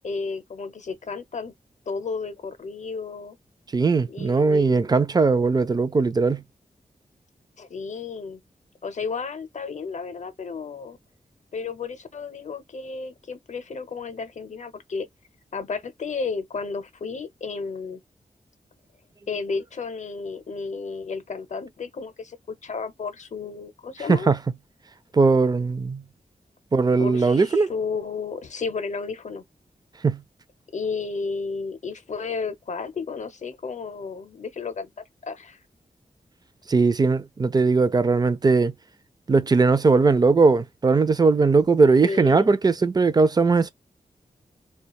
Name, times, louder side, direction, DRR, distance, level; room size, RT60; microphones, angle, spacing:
voice 1, 0.0-1.5 1.9-3.4 4.1-4.9 7.6-8.4 8.8-11.0 11.5-15.1 15.5-18.0 19.3-24.3 27.0-29.4 30.7-34.9 35.2-35.6 42.0-42.5, left 4 dB, 55° left, 0.6 m, -32 dB
voice 2, 3.7-6.4 24.1-24.4 25.1-26.0 26.7-27.7 30.0-30.2 36.7-38.7 39.3-43.7, right 4 dB, 30° right, 0.4 m, -19 dB
2.4 x 2.3 x 2.8 m
wide cardioid pair, 80°, 14 cm